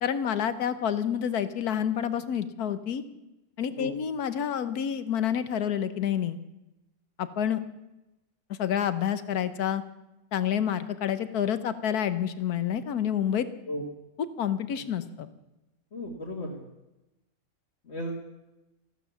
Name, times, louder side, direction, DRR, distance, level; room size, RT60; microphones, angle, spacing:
voice 1, 0.0-3.0 3.6-6.4 7.2-7.6 8.6-9.8 10.3-13.5 14.4-15.3, left 9 dB, 90° left, 13 dB, 1.5 m, -28 dB
voice 2, 15.9-16.6 17.9-18.2, equal, 45° left, -2 dB, 2.1 m, -34 dB
14.5 x 12.5 x 7.2 m, 0.96 s
omnidirectional pair, 1.6 m